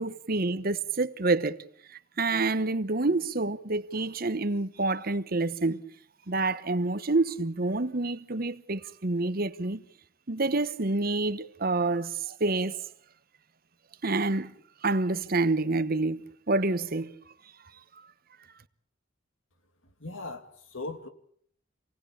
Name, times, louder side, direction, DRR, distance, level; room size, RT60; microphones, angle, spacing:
voice 1, 0.0-1.6 1.9-5.8 6.3-9.8 10.3-12.8 14.0-14.5 14.8-17.1, right 3 dB, 50° right, 1.1 m, -28 dB
voice 2, 20.0-21.1, left 2 dB, 85° left, 2.7 m, -38 dB
27.5 x 18.5 x 8.5 m
head